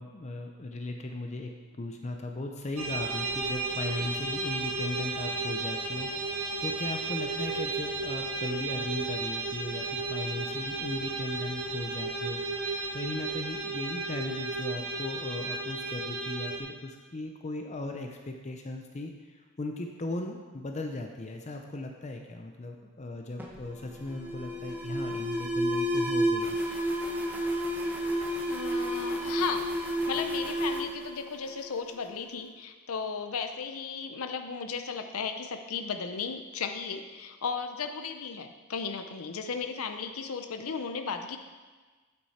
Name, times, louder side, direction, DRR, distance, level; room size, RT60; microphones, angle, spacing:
voice 1, 0.0-12.4 12.9-26.6, left 2 dB, 30° left, 3 dB, 0.6 m, -37 dB
sound 1, 2.8-16.6, right 3 dB, 70° right, 1.6 m, -33 dB
Alarm, 23.4-32.0, equal, 10° right, 0.9 m, -31 dB
voice 2, 28.5-29.7 30.1-41.4, left 5 dB, 80° left, 7 dB, 0.6 m, -35 dB
8.9 x 8.0 x 4.2 m, 1.4 s
head